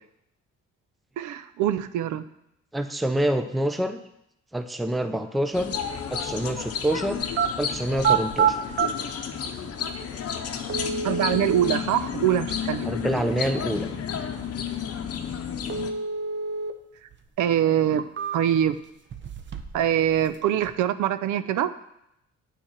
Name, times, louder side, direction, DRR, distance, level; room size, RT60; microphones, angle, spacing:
voice 1, 1.2-2.3 11.0-12.9 17.0-17.1 17.4-18.8 19.7-21.7, right 10 dB, 80° right, 13 dB, 0.5 m, -24 dB
voice 2, 2.7-4.0 4.5-5.7 6.1-7.2 7.6-8.6 12.9-13.9, right 1 dB, ahead, 9 dB, 0.4 m, -26 dB
sound 1, 5.5-15.9, left 7 dB, 50° left, 0.8 m, -32 dB
sound 2, 7.2-7.5 7.9-8.9 9.9-10.0 10.7-11.7 15.7-16.7 17.1-17.2 17.8-18.7 19.1-19.8 20.1-20.7, right 7 dB, 40° right, 0.6 m, -27 dB
9.0 x 4.6 x 4.4 m, 0.80 s
cardioid pair, 90°, 30 cm